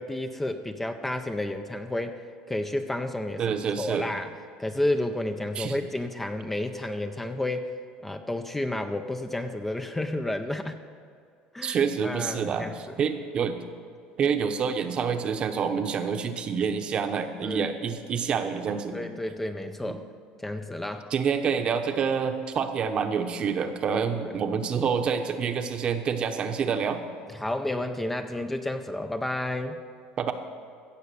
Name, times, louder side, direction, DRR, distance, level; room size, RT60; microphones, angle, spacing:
voice 1, 0.0-4.3 4.6-7.7 8.0-10.8 11.5-12.9 17.4-17.7 18.9-20.0 20.4-21.1 27.3-29.8, left 1 dB, 10° left, 7 dB, 0.6 m, -31 dB
voice 2, 3.4-4.1 5.6-5.8 11.6-13.6 14.2-19.0 19.9-20.0 21.1-27.0 30.2-30.3, right 6 dB, 40° right, 7 dB, 1.0 m, -27 dB
16.0 x 6.9 x 6.9 m, 2.3 s
supercardioid pair, 125°, 3 cm